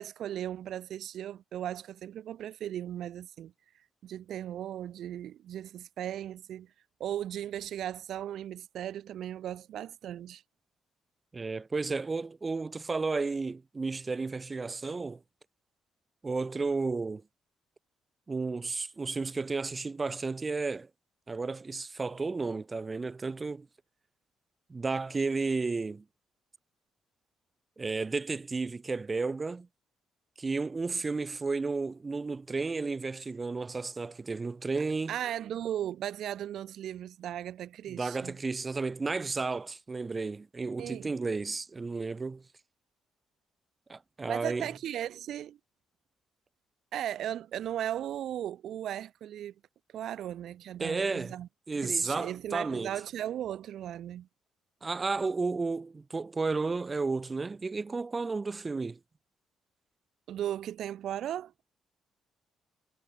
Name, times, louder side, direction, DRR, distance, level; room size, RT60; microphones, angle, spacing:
voice 1, 0.0-3.5 4.0-6.7 7.0-10.4 35.1-38.4 40.8-41.1 44.3-45.6 46.9-49.5 49.9-51.5 51.7-54.3 60.3-61.5, right 11 dB, 70° right, 1.0 m, -37 dB
voice 2, 11.3-15.2 16.2-17.2 18.3-20.9 21.3-23.7 24.7-26.0 27.8-29.7 30.4-35.2 37.9-42.4 43.9-44.7 50.8-51.3 51.7-52.9 54.8-59.0, right 4 dB, 25° right, 3.2 m, -32 dB
cardioid pair, 90°, 0 cm